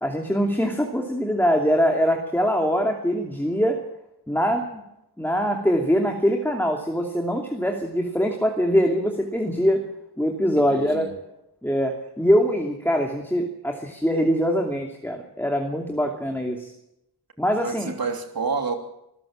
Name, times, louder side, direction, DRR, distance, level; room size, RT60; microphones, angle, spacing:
voice 1, 0.0-3.8 4.3-4.8 5.2-9.8 10.2-11.1 11.6-16.7 17.4-17.9, equal, 5° left, 2 dB, 2.7 m, -23 dB
voice 2, 10.7-11.1 17.6-18.8, right 4 dB, 60° right, 4 dB, 3.1 m, -29 dB
25.5 x 14.0 x 7.5 m, 0.86 s
wide cardioid pair, 75°, 39 cm